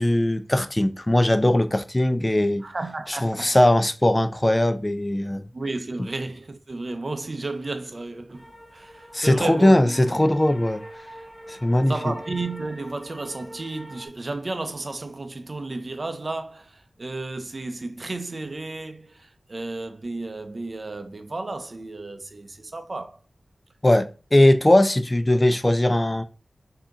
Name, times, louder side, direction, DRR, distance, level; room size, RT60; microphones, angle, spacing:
voice 1, 0.0-2.6 3.1-5.4 9.1-10.8 11.5-11.9 23.8-26.2, left 1 dB, 25° left, 0.4 m, -20 dB
voice 2, 2.6-3.6 5.5-10.2 11.9-23.2, right 2 dB, 50° right, 0.6 m, -33 dB
sound 1, 8.3-14.1, equal, ahead, 1.3 m, -43 dB
3.6 x 2.8 x 3.7 m
cardioid pair, 45°, 0 cm